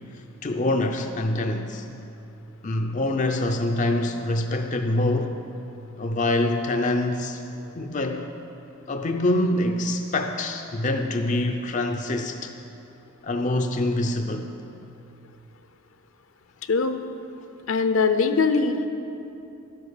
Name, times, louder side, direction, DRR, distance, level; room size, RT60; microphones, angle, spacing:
voice 1, 0.4-1.9 2.6-5.4 6.0-7.4 7.7-8.3 8.9-12.5 13.2-14.5, left 1 dB, 35° left, 4 dB, 0.5 m, -25 dB
voice 2, 16.7-17.0 17.7-18.9, left 4 dB, 65° left, 8 dB, 0.7 m, -21 dB
12.5 x 10.0 x 6.7 m, 2.8 s
head